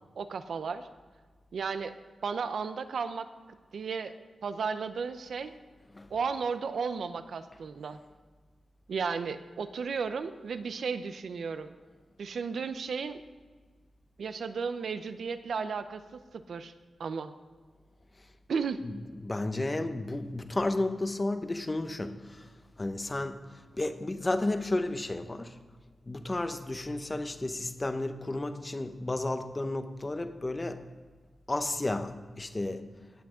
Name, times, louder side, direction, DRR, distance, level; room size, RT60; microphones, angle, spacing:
voice 1, 0.2-0.9 1.5-1.9 2.2-3.3 3.7-4.1 4.4-5.5 6.1-8.0 8.9-11.7 12.2-13.2 14.2-16.2 16.5-16.7 17.0-17.3 18.5-18.8, right 5 dB, 70° right, 10 dB, 0.7 m, -34 dB
voice 2, 18.8-22.5 22.8-23.4 23.8-25.5 26.1-30.8 31.5-32.8, left 2 dB, 20° left, 9 dB, 0.7 m, -32 dB
17.5 x 8.5 x 3.8 m, 1.4 s
wide cardioid pair, 140°, 0 cm